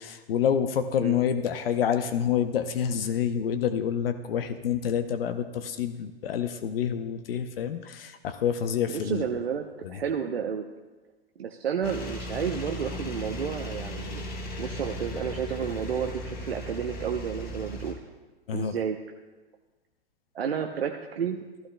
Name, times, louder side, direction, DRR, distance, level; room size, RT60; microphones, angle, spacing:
voice 1, 0.0-9.2 9.8-10.0 18.5-18.8, left 8 dB, 70° left, 10 dB, 0.7 m, -28 dB
voice 2, 8.9-10.6 11.4-14.2 14.6-18.0 18.5-19.0 20.3-21.4, right 7 dB, 85° right, 3 dB, 0.8 m, -31 dB
sound 1, 11.8-17.9, equal, 35° left, 2.3 m, -37 dB
15.0 x 13.0 x 2.2 m, 1.2 s
hypercardioid pair, 95°, 30 cm